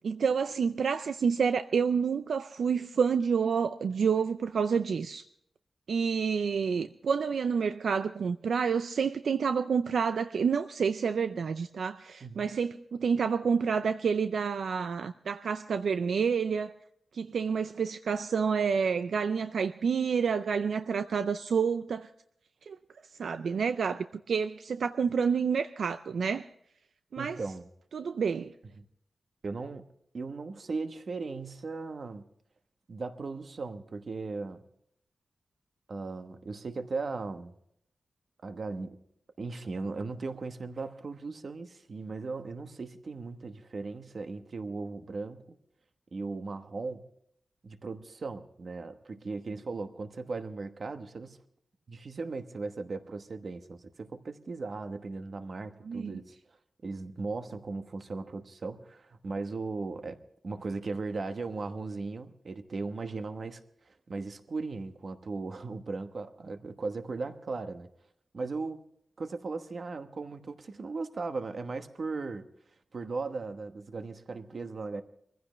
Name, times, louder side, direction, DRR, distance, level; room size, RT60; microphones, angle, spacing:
voice 1, 0.0-5.2 5.9-16.7 17.1-22.1 22.7-22.8 23.2-26.5 27.1-27.4 27.9-28.5 55.9-56.2, right 6 dB, 70° right, 0.5 m, -29 dB
voice 2, 27.2-27.6 28.8-28.9 29.4-29.9 30.1-32.2 32.9-34.6 35.9-37.5 38.4-39.0 39.4-45.5 46.1-47.0 47.6-51.4 51.9-56.3 56.8-60.2 60.4-63.6 63.9-67.9 68.3-68.8 69.2-72.4 72.9-75.0, right 3 dB, 45° right, 1.1 m, -37 dB
23.5 x 15.5 x 3.2 m
wide cardioid pair, 160°, 0 cm